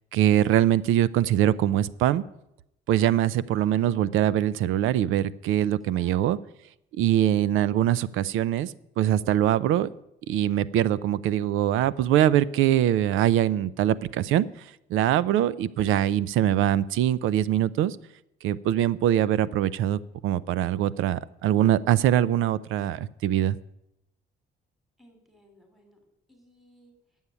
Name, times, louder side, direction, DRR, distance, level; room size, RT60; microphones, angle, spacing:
voice 1, 0.1-2.2 2.9-6.4 7.0-9.9 10.3-18.0 18.4-23.6, right 11 dB, 90° right, 19 dB, 0.5 m, -23 dB
voice 2, 5.9-6.5 25.0-26.0 26.3-26.9, equal, ahead, 3 dB, 2.7 m, -58 dB
9.6 x 7.2 x 9.0 m, 0.83 s
cardioid pair, 90°, 20 cm